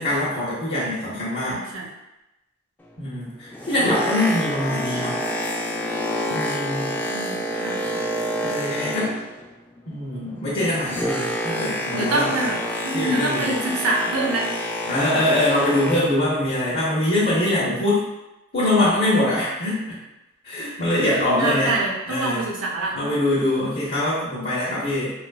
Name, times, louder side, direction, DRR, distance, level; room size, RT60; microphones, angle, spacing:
voice 1, 0.0-1.6 3.0-5.2 6.3-6.9 8.4-9.2 9.9-12.3 12.9-13.6 14.9-18.0 18.5-20.0 20.4-21.8 22.1-22.4 22.9-25.1, left 1 dB, 50° left, -9 dB, 0.7 m, -23 dB
voice 2, 1.5-1.9 7.1-8.0 11.9-12.6 12.8-14.5 21.0-22.9, right 2 dB, 85° right, -2 dB, 0.6 m, -26 dB
Boat Water vehicle, 3.4-9.5 9.8-16.2 16.9-17.0, equal, 10° left, 0.3 m, -28 dB
2.9 x 2.4 x 2.3 m, 0.96 s
head